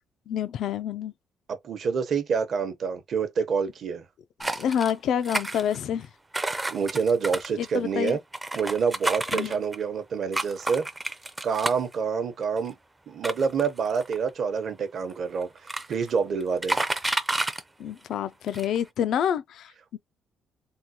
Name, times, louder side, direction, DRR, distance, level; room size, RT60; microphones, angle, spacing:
voice 1, 0.3-1.1 4.4-6.1 7.6-8.2 9.3-9.6 17.8-20.0, left 9 dB, 70° left, 0.3 m, -28 dB
voice 2, 1.6-4.0 6.7-8.2 8.5-10.9 11.4-12.7 13.1-15.5 15.9-16.8, right 5 dB, 55° right, 0.8 m, -27 dB
sound 1, 4.4-4.9 5.2-6.0 6.3-9.8 10.3-11.9 12.6-12.7 13.2-14.3 15.1-15.2 15.4-16.1 16.4-17.6 18.1-18.2 18.5-18.8, right 2 dB, 15° right, 0.5 m, -30 dB
3.6 x 2.2 x 2.8 m
cardioid pair, 115°, 0 cm